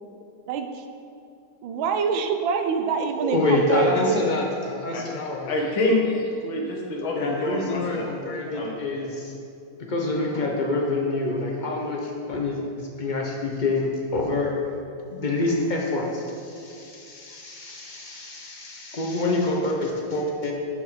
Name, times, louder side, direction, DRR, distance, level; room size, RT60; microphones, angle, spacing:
voice 1, 1.6-4.3, right 6 dB, 80° right, 7 dB, 1.4 m, -25 dB
voice 2, 3.2-5.5 7.1-9.3 9.8-14.5 15.1-20.5, left 2 dB, 60° left, 0 dB, 0.5 m, -27 dB
voice 3, 4.9-8.1 8.5-8.8, left 2 dB, 85° left, -1 dB, 2.2 m, -27 dB
11.0 x 5.4 x 4.9 m, 2.5 s
omnidirectional pair, 2.1 m